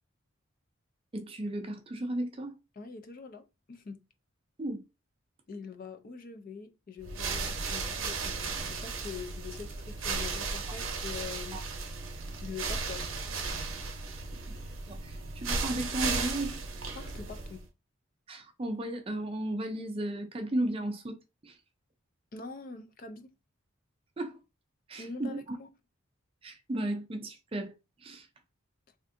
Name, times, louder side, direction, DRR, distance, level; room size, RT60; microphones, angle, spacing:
voice 1, 1.1-2.6 4.6-4.8 11.5-11.6 14.5-14.6 14.9-16.6 18.3-21.6 24.2-24.4 24.9-25.6 26.4-28.3, right 1 dB, 25° right, 0.4 m, -35 dB
voice 2, 2.8-4.0 5.5-11.6 12.4-13.1 16.9-17.7 22.3-23.3 25.0-25.7, left 5 dB, 40° left, 0.4 m, -44 dB
sound 1, 7.0-17.7, right 4 dB, 75° right, 0.7 m, -35 dB
3.4 x 2.5 x 2.5 m
head